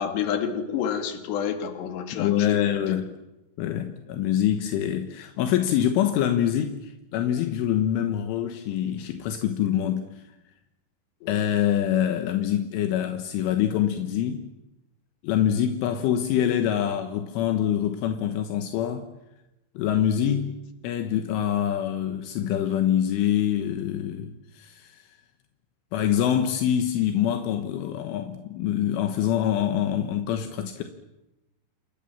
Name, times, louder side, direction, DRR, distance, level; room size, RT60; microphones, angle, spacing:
voice 1, 0.0-3.0 11.2-11.4 20.2-20.4, left 8 dB, 65° left, 4.3 m, -29 dB
voice 2, 2.1-3.1 3.6-10.1 11.3-14.4 15.2-19.1 19.8-25.0 25.9-30.8, left 10 dB, 80° left, 3.8 m, -25 dB
28.0 x 24.5 x 7.3 m
omnidirectional pair, 5.6 m